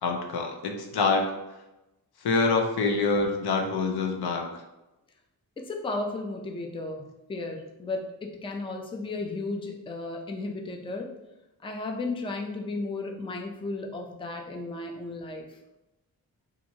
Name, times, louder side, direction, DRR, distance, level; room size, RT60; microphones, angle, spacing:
voice 1, 0.0-1.3 2.2-4.5, left 4 dB, 85° left, 3 dB, 0.7 m, -25 dB
voice 2, 5.6-11.1 11.6-15.6, left 2 dB, 15° left, 2 dB, 0.4 m, -34 dB
4.4 x 2.6 x 2.7 m, 0.97 s
wide cardioid pair, 115°, 37 cm